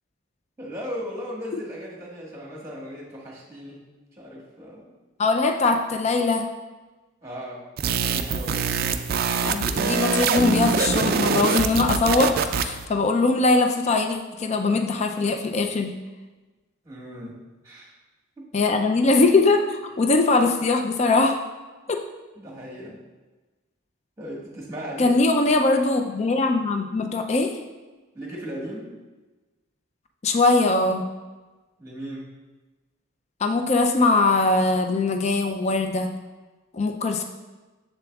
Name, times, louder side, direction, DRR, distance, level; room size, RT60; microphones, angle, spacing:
voice 1, 0.6-3.8 4.1-4.9 7.2-7.6 7.9-9.0 16.8-17.3 17.6-18.0 18.4-18.5 22.4-23.0 24.2-25.2 28.1-28.9 31.8-32.3, equal, 15° right, -3 dB, 1.4 m, -37 dB
voice 2, 5.2-6.5 9.4-15.9 18.5-21.4 21.9-22.0 25.0-27.5 30.2-31.1 33.4-36.1 36.7-37.2, left 3 dB, 35° left, 5 dB, 0.4 m, -21 dB
sound 1, 7.8-12.9, right 5 dB, 50° right, 0.3 m, -24 dB
7.0 x 6.9 x 2.3 m, 1.2 s
head